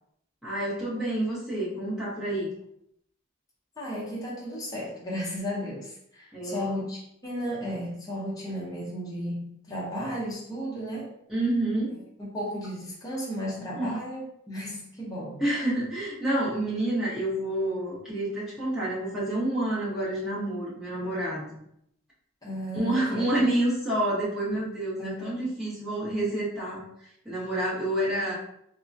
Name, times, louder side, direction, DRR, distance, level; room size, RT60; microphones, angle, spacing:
voice 1, 0.4-2.5 6.3-6.7 11.3-11.9 13.8-14.0 15.4-21.5 22.7-26.8 27.2-28.3, right 1 dB, ahead, -10 dB, 1.1 m, -28 dB
voice 2, 3.8-11.1 12.2-15.4 22.4-23.3 25.0-25.4, equal, 20° left, -5 dB, 0.6 m, -34 dB
3.6 x 2.1 x 2.6 m, 0.74 s
head